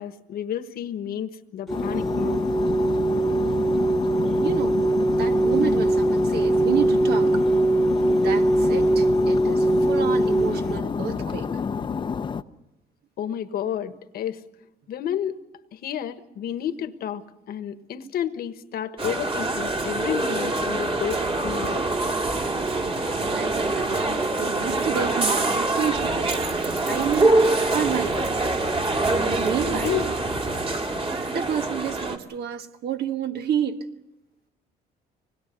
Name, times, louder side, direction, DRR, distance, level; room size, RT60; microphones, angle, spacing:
voice 1, 0.0-2.4 13.2-14.4 14.9-15.4 15.7-21.9 29.7-30.1, left 9 dB, 65° left, 1.3 m, -31 dB
sound 1, 1.7-12.4, left 6 dB, 30° left, 0.7 m, -29 dB
sound 2, 1.7-10.8, right 2 dB, ahead, 1.5 m, -22 dB
voice 2, 4.4-4.8 5.1-7.5 8.2-11.5 23.3-28.6 29.4-30.0 31.3-33.9, right 8 dB, 70° right, 1.5 m, -30 dB
sound 3, 19.0-32.2, right 2 dB, 30° right, 2.2 m, -24 dB
25.0 x 20.5 x 6.9 m
cardioid pair, 110°, 17 cm